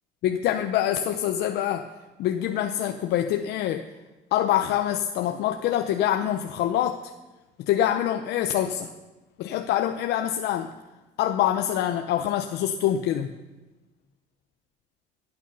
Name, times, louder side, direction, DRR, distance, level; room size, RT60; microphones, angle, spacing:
voice 1, 0.2-1.9 2.2-3.9 4.3-7.1 7.6-8.9 9.4-10.7 11.2-13.3, left 11 dB, 80° left, 6 dB, 0.8 m, -25 dB
22.5 x 9.2 x 5.5 m, 1.1 s
cardioid pair, 110°, 17 cm